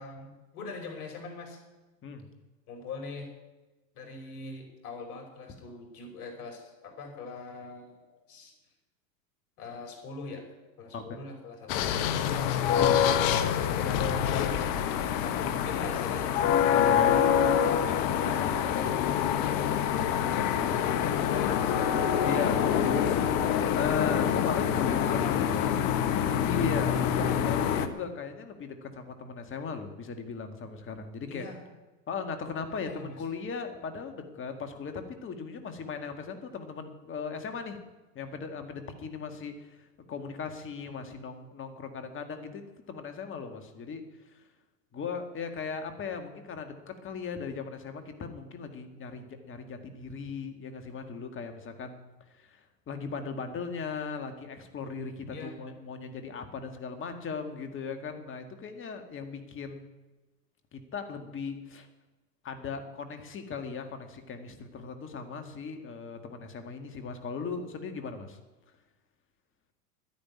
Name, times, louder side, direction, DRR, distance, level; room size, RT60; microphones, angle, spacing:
voice 1, 0.0-1.6 2.7-3.3 3.9-8.5 9.6-10.5 10.8-12.6 13.8-14.8 15.2-16.4 17.3-21.9 22.7-24.0 24.7-26.4 31.3-31.6 32.7-33.2 55.3-55.6, left 4 dB, 65° left, 2 dB, 5.4 m, -41 dB
sound 1, 11.7-27.9, left 9 dB, 45° left, 1.2 m, -26 dB
voice 2, 12.7-13.0 16.7-17.2 22.2-23.1 23.8-25.7 26.3-31.5 32.1-37.8 38.1-42.6 42.9-44.1 44.3-44.4 44.9-52.0 52.3-59.8 60.7-61.9 62.4-68.4, left 5 dB, 25° left, 7 dB, 2.0 m, -37 dB
11.0 x 10.5 x 9.7 m, 1.1 s
hypercardioid pair, 115°, 47 cm